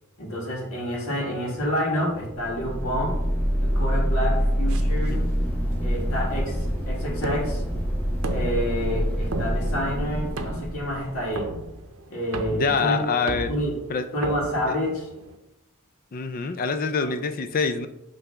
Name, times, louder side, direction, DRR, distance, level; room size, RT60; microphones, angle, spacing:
voice 1, 0.2-3.1 3.6-5.2 5.8-7.6 8.3-11.5 12.1-13.1 13.5-13.8 14.1-15.1 17.0-17.1, equal, 70° left, -3 dB, 2.1 m, -28 dB
sound 1, 2.3-11.6, equal, 10° left, 1.0 m, -26 dB
sound 2, 4.7-15.4, right 2 dB, 70° right, 0.7 m, -37 dB
voice 2, 12.5-13.5 13.9-14.1 14.7-14.8 16.1-17.9, left 5 dB, 40° left, 10 dB, 0.4 m, -25 dB
5.9 x 3.3 x 5.5 m, 0.93 s
head